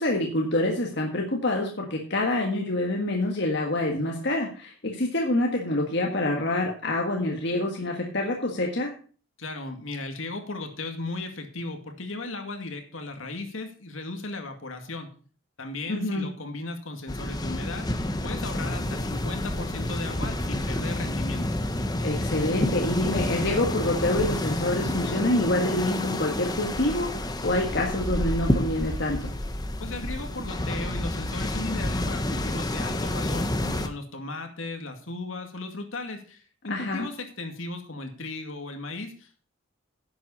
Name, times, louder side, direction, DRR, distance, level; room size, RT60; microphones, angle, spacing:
voice 1, 0.0-8.9 15.9-16.3 22.0-29.3 36.7-37.1, left 1 dB, 55° left, 0 dB, 1.6 m, -26 dB
voice 2, 9.4-15.1 15.6-17.9 18.2-21.5 29.8-36.4 36.6-39.4, left 2 dB, 70° left, 5 dB, 2.2 m, -36 dB
sound 1, 17.1-33.9, left 1 dB, 20° left, 0.9 m, -29 dB
10.5 x 7.8 x 5.4 m, 0.40 s
head